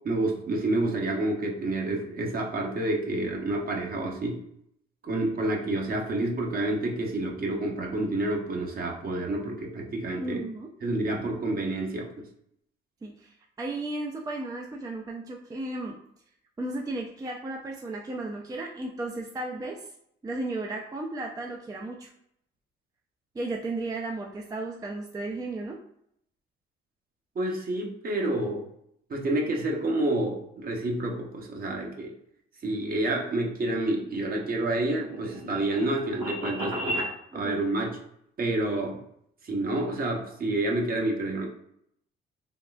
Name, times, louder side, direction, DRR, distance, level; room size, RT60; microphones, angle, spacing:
voice 1, 0.0-4.4 5.0-10.4 10.8-12.1 27.4-28.6 29.1-32.1 32.6-37.0 37.3-38.0 38.4-39.0 39.4-41.4, right 2 dB, 45° right, 0 dB, 0.8 m, -29 dB
voice 2, 10.2-10.7 13.0-16.0 16.6-19.9 20.2-22.1 23.3-25.8 37.3-37.6, right 2 dB, 15° right, 1 dB, 0.4 m, -34 dB
Rolling Metal, 34.1-37.1, equal, 80° right, 1.2 m, -34 dB
3.6 x 2.3 x 2.3 m, 0.72 s
supercardioid pair, 70°, 21 cm